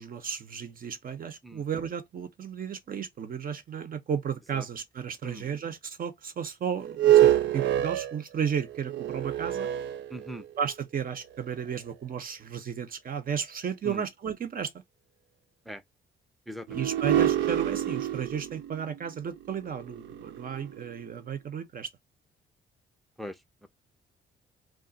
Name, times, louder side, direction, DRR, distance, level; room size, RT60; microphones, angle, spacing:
voice 1, 0.0-9.7 10.6-14.7 16.7-21.9, right 7 dB, 45° right, 0.8 m, -34 dB
sound 1, 6.8-10.7 11.4-11.5 16.7-21.0, right 12 dB, 70° right, 0.4 m, -26 dB
voice 2, 10.1-10.4 13.8-14.0 15.7-15.8 16.5-16.9 23.2-23.3, right 1 dB, ahead, 0.6 m, -40 dB
2.4 x 2.3 x 3.8 m
cardioid pair, 90°, 20 cm